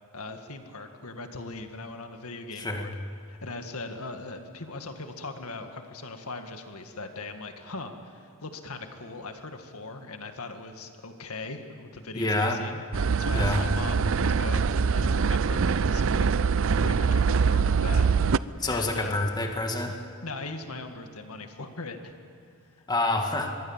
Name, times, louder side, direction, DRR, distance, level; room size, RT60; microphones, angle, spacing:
voice 1, 0.1-2.9 3.3-14.7 14.9-19.2 20.2-22.2, left 3 dB, 80° left, 6 dB, 1.9 m, -39 dB
voice 2, 2.6-2.9 12.1-12.6 13.3-13.6 18.6-19.9 22.9-23.5, left 2 dB, 20° left, 3 dB, 2.0 m, -27 dB
sound 1, 12.9-18.4, right 5 dB, 60° right, 0.5 m, -24 dB
25.5 x 22.0 x 7.4 m, 2.6 s
head